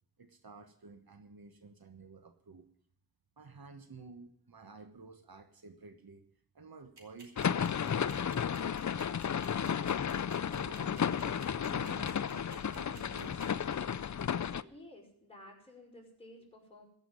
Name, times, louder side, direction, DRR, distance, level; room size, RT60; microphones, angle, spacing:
voice 1, 0.2-2.7 3.4-6.3 6.5-8.9 9.5-10.0 10.5-14.1 14.5-14.7 15.4-15.5, right 4 dB, 70° right, 8 dB, 1.3 m, -53 dB
sound 1, 7.0-13.6, right 3 dB, 90° right, 2.9 m, -54 dB
sound 2, 7.4-14.6, left 8 dB, 50° left, 0.5 m, -33 dB
voice 2, 14.7-16.9, left 1 dB, 15° left, -2 dB, 5.7 m, -53 dB
15.0 x 6.3 x 9.6 m, 0.65 s
wide cardioid pair, 55°, 38 cm